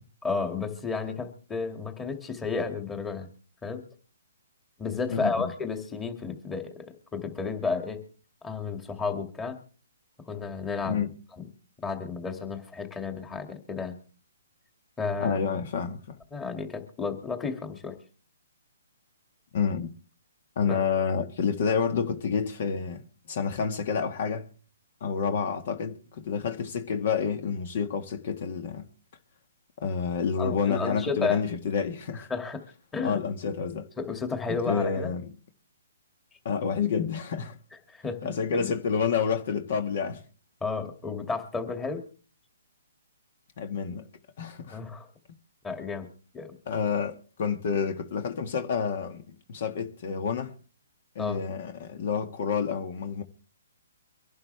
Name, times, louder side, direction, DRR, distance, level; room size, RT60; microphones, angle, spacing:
voice 1, 0.2-3.3 3.6-3.8 4.8-6.9 7.1-8.0 8.4-9.6 10.3-11.1 11.4-11.5 11.8-14.0 15.0-15.4 16.3-18.0 20.7-20.8 30.4-31.4 32.1-32.6 32.9-33.2 34.0-35.1 37.9-38.7 40.6-42.1 44.7-45.1 45.6-46.1 46.3-46.5 51.2-51.4, left 4 dB, 10° left, 2.4 m, -32 dB
voice 2, 5.1-5.5 10.9-11.1 15.2-16.2 19.5-19.9 20.6-23.0 23.3-24.5 25.0-28.9 29.8-32.3 33.0-33.9 34.7-35.3 36.5-37.6 38.2-40.2 43.6-44.1 44.4-44.8 46.7-50.5 51.2-53.2, left 6 dB, 50° left, 1.8 m, -29 dB
24.5 x 11.5 x 3.4 m
hypercardioid pair, 150°, 0 cm